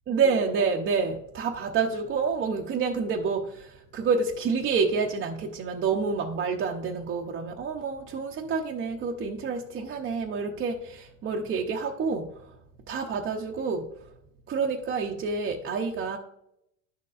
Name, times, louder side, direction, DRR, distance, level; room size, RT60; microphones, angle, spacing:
voice 1, 0.1-12.6 12.9-14.1 14.5-16.2, right 5 dB, 30° right, 0 dB, 0.6 m, -28 dB
10.5 x 6.8 x 2.4 m, 0.79 s
supercardioid pair, 135°, 39 cm